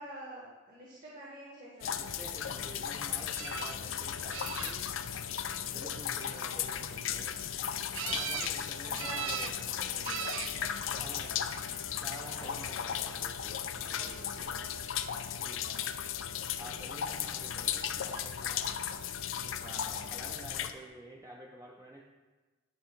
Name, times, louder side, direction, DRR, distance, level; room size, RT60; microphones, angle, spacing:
voice 1, 0.0-2.1 5.7-6.0 8.0-8.6 8.8-11.4 12.3-12.6 13.9-14.8 15.6-15.9 19.6-20.2, equal, 45° right, -6 dB, 1.6 m, -49 dB
sound 1, 1.8-20.7, left 9 dB, 90° left, 0.4 m, -36 dB
voice 2, 2.0-4.9 5.6-7.4 8.0-9.8 11.0-11.5 12.0-14.5 15.4-16.0 16.6-18.8 19.4-22.0, right 1 dB, 15° right, -1 dB, 0.5 m, -50 dB
sound 2, 3.3-3.8 4.3-5.0 7.9-8.5 8.9-9.6 10.0-10.5 11.5-11.9 18.2-18.3 18.6-18.7, right 9 dB, 85° right, 0.5 m, -38 dB
sound 3, 8.4-14.6, left 1 dB, 25° left, 0.8 m, -57 dB
9.6 x 4.7 x 4.5 m, 1.3 s
head